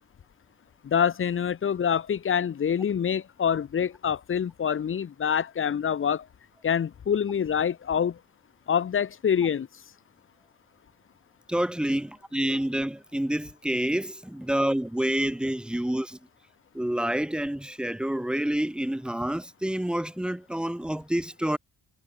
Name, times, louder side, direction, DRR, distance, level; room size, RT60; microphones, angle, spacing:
voice 1, 0.8-6.3 6.6-8.2 8.7-9.7, left 8 dB, 35° left, 1.4 m, -26 dB
voice 2, 11.5-16.2 16.7-21.6, right 1 dB, ahead, 1.3 m, -28 dB
cardioid pair, 175°, 36 cm